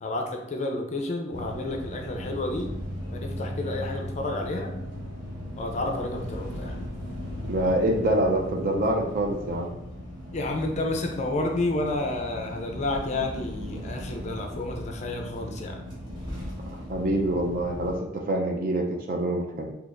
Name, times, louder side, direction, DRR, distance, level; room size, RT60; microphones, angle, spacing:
voice 1, 0.0-2.7 3.1-4.7 5.6-6.8 10.3-15.9, left 2 dB, 35° left, 2 dB, 0.4 m, -30 dB
sound 1, 1.3-18.0, equal, 20° right, 1.0 m, -37 dB
voice 2, 7.5-9.7 16.9-18.0 18.3-19.7, right 1 dB, 45° right, 1 dB, 0.5 m, -25 dB
4.0 x 2.8 x 2.4 m, 0.83 s
head